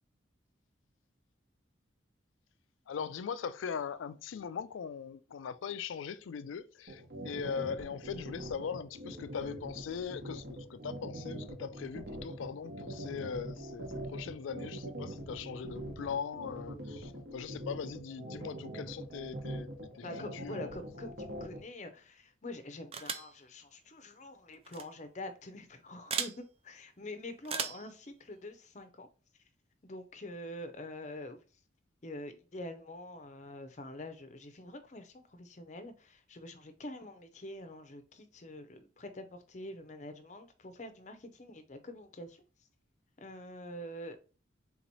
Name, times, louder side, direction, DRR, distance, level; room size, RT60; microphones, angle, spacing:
voice 1, 2.9-20.8, left 6 dB, 85° left, 0.4 m, -40 dB
sound 1, 6.9-21.6, right 1 dB, 55° right, 1.0 m, -42 dB
voice 2, 20.0-29.1 29.8-31.4 32.0-42.4 43.2-44.2, left 1 dB, 40° left, 0.6 m, -46 dB
sound 2, 22.9-23.3 24.6-24.8 26.1-26.4 27.4-27.9, right 6 dB, 30° right, 0.4 m, -36 dB
3.9 x 3.0 x 4.0 m
head